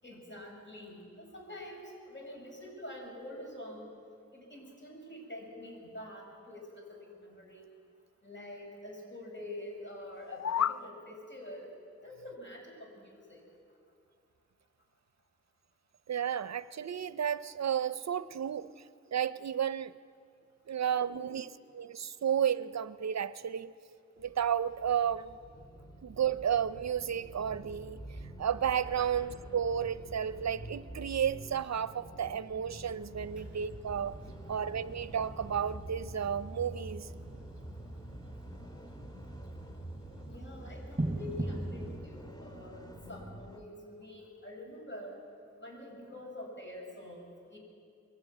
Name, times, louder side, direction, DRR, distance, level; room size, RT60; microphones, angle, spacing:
voice 1, 0.0-3.9 4.3-7.7 8.2-11.7 12.0-13.4 20.7-21.4 29.0-29.1 33.4-33.5 34.2-34.6 40.2-45.2 45.6-47.6, left 1 dB, 40° left, 7.7 m, -46 dB
sound 1, 10.1-10.8, left 8 dB, 60° left, 0.6 m, -31 dB
voice 2, 16.1-18.7 19.1-19.9 20.7-23.7 24.2-25.3 26.0-28.0 28.4-34.1 34.5-37.1, right 8 dB, 65° right, 0.6 m, -32 dB
sound 2, 24.2-43.6, right 1 dB, 15° left, 2.1 m, -48 dB
sound 3, 33.2-42.0, right 1 dB, 20° right, 6.1 m, -42 dB
22.0 x 14.0 x 9.7 m
cardioid pair, 40°, 29 cm